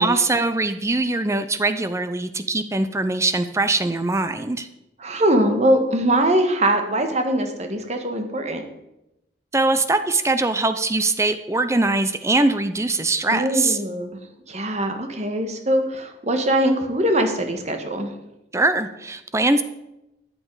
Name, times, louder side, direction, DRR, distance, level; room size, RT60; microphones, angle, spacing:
voice 1, 0.0-4.7 9.5-13.8 18.5-19.6, right 2 dB, 15° right, 10 dB, 0.6 m, -22 dB
voice 2, 5.0-8.6 13.3-14.2 14.5-18.1, right 1 dB, 40° right, 6 dB, 1.6 m, -22 dB
14.0 x 8.7 x 4.8 m, 0.90 s
head